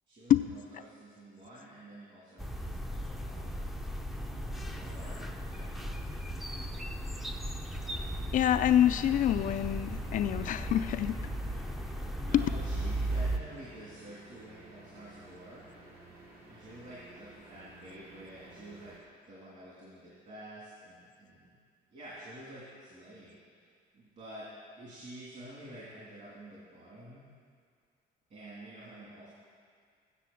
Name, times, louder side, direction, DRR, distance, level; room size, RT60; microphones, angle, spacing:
voice 1, 0.1-4.0 4.7-6.0 12.1-15.6 16.5-19.0 19.2-21.5 21.9-23.4 23.9-24.5 24.8-27.2 28.3-29.3, right 1 dB, 50° right, -8 dB, 2.8 m, -49 dB
sound 1, 2.4-13.4, right 1 dB, ahead, 0.5 m, -36 dB
sound 2, 7.6-19.0, right 2 dB, 65° right, 2.5 m, -54 dB
voice 2, 8.3-11.2 12.3-12.5, left 11 dB, 50° left, 10 dB, 0.4 m, -26 dB
8.3 x 6.9 x 7.2 m, 2.1 s
cardioid pair, 110°, 17 cm